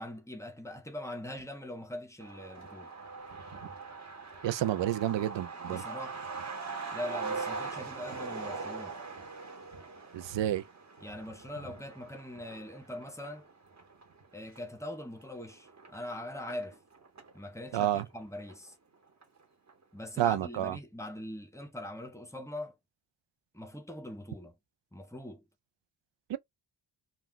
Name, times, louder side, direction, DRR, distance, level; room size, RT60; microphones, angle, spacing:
voice 1, 0.0-2.9 5.7-6.2 6.9-9.0 11.0-13.5 14.3-16.8 17.3-18.8 19.9-22.7 23.5-24.6 24.9-25.4, left 1 dB, 5° left, 0.6 m, -42 dB
Truck, 2.2-17.4 17.7-17.8 18.1-18.9 19.2-19.3 19.7-20.0, right 4 dB, 35° right, 1.0 m, -42 dB
voice 2, 4.4-5.8 10.1-10.6 17.7-18.0 20.2-20.8 26.3-26.4, right 12 dB, 65° right, 0.5 m, -29 dB
2.3 x 2.2 x 3.8 m
wide cardioid pair, 120°, 47 cm